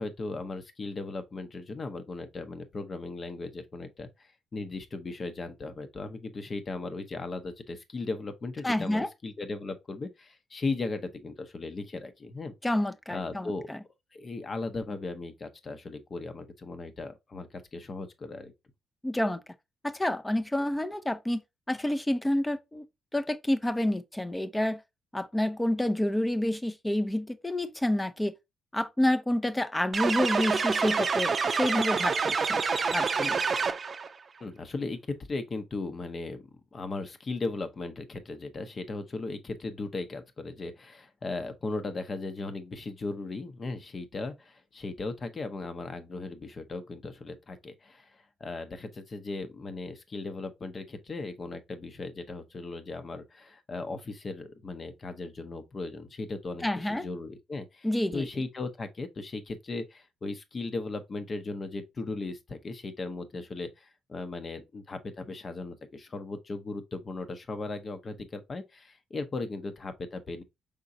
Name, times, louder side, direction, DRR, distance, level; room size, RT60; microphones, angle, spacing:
voice 1, 0.0-12.5 13.1-13.7 14.1-18.5 34.4-36.4 36.7-70.4, left 3 dB, 35° left, 0.9 m, -37 dB
voice 2, 8.6-9.1 12.6-13.8 19.0-19.4 19.8-21.4 21.7-22.9 23.1-24.8 25.1-28.3 28.7-32.6 32.9-33.4 56.6-57.0 57.8-58.3, left 1 dB, 10° left, 0.6 m, -28 dB
sound 1, 29.9-34.1, right 5 dB, 40° right, 0.6 m, -27 dB
5.1 x 3.7 x 2.7 m
cardioid pair, 90°, 0 cm